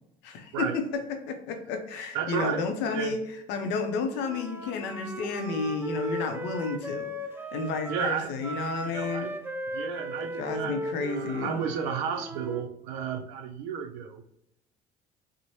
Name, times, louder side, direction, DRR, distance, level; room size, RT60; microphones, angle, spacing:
voice 1, 0.2-0.7 1.3-3.2 3.5-7.1 7.5-9.3 10.2-11.6, left 4 dB, 75° left, 5 dB, 0.6 m, -31 dB
voice 2, 2.1-3.2 7.9-8.3 8.8-9.3 9.7-14.2, right 7 dB, 80° right, 7 dB, 0.4 m, -33 dB
Wind instrument woodwind instrument, 4.2-12.7, right 1 dB, 10° right, 0.4 m, -37 dB
3.0 x 2.0 x 2.7 m, 0.83 s
hypercardioid pair, 70°, 18 cm